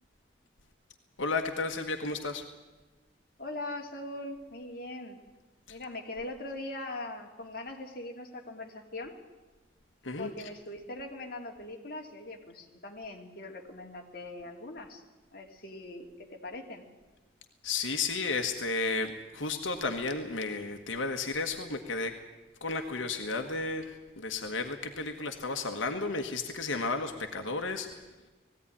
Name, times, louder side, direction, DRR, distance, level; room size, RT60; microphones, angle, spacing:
voice 1, 1.2-2.4 5.7-5.8 10.0-10.3 17.6-22.2 22.6-28.0, left 3 dB, 90° left, 5 dB, 1.5 m, -33 dB
voice 2, 3.4-5.2 5.7-9.1 10.2-15.0 15.3-16.8, left 2 dB, 50° left, 1 dB, 2.7 m, -41 dB
19.5 x 16.0 x 10.0 m, 1.2 s
head